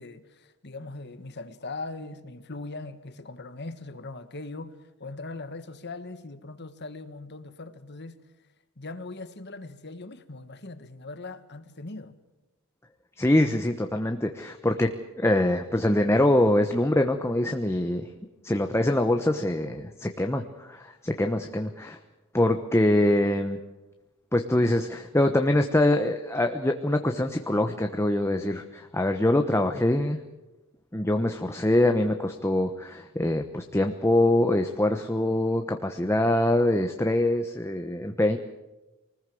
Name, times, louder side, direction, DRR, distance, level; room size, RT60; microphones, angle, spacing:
voice 1, 0.0-8.2 8.8-12.1, left 3 dB, 50° left, 1.6 m, -40 dB
voice 2, 13.2-14.9 15.2-18.1 18.4-22.0 22.3-23.6 24.3-30.2 30.9-38.4, left 1 dB, 10° left, 1.0 m, -24 dB
24.5 x 19.5 x 7.8 m
head